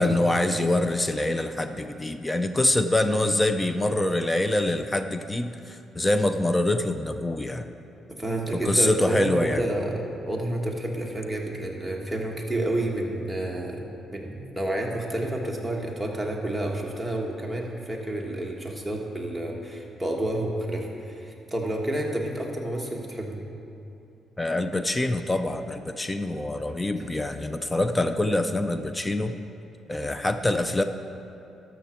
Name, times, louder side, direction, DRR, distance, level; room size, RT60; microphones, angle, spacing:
voice 1, 0.0-7.7 8.5-9.6 24.4-29.4 29.9-30.8, left 1 dB, 15° left, 9 dB, 0.4 m, -25 dB
voice 2, 8.1-23.4, right 1 dB, ahead, -2 dB, 1.5 m, -30 dB
13.0 x 6.1 x 4.5 m, 2.7 s
cardioid pair, 90°, 0 cm